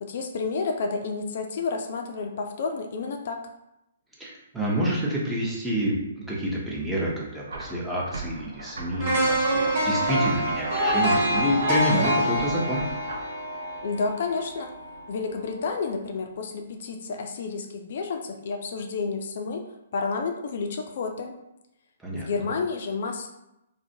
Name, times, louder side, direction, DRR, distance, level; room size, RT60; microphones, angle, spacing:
voice 1, 0.0-3.4 13.8-14.7 15.1-19.6 19.9-21.3 22.1-23.3, left 4 dB, 55° left, 3 dB, 0.3 m, -30 dB
voice 2, 4.2-12.8 22.0-22.3, equal, 5° right, -5 dB, 0.6 m, -28 dB
sound 1, 7.5-13.2, right 2 dB, 70° right, 0.4 m, -39 dB
sound 2, 9.0-15.0 15.4-15.5, equal, 50° right, 1.4 m, -26 dB
2.4 x 2.1 x 2.6 m, 0.87 s
figure-of-eight pair, 125°, 0 cm